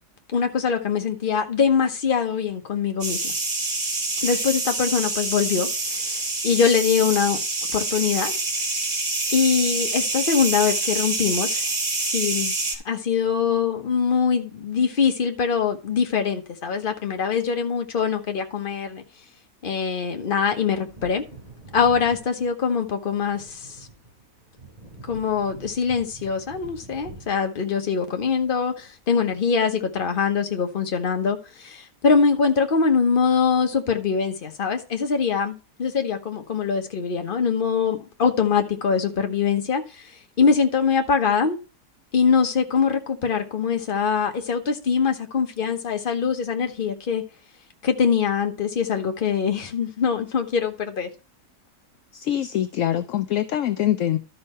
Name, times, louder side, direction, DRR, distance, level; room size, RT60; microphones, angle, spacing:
voice 1, 0.3-3.3 4.2-7.4 7.7-8.3 9.3-11.6 12.0-12.5 12.8-19.0 19.6-21.2 21.7-23.7 25.1-40.1 40.4-41.5 42.1-47.2 47.8-51.1, left 6 dB, 40° left, 1.1 m, -23 dB
sound 1, 3.0-12.8, right 3 dB, 80° right, 2.8 m, -26 dB
Wind / Thunder, 20.7-29.0 29.3-29.4, right 3 dB, 25° right, 3.2 m, -46 dB
voice 2, 52.1-54.2, left 12 dB, 65° left, 0.8 m, -24 dB
12.0 x 5.5 x 4.3 m
omnidirectional pair, 1.6 m